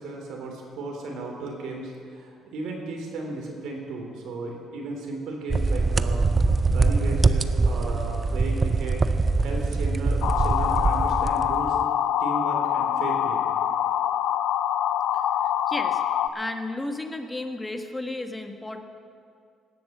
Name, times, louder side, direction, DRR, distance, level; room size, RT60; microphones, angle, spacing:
voice 1, 0.0-6.2 6.7-9.0 9.4-11.8 12.2-13.5, right 3 dB, 80° right, 1 dB, 3.3 m, -35 dB
sound 1, 5.5-11.8, right 3 dB, 25° right, 0.5 m, -23 dB
sound 2, 10.2-16.3, left 10 dB, 75° left, 0.5 m, -25 dB
voice 2, 15.7-16.0 16.3-18.8, left 2 dB, 10° left, 6 dB, 1.2 m, -33 dB
18.5 x 7.9 x 7.4 m, 2.3 s
cardioid pair, 110°, 0 cm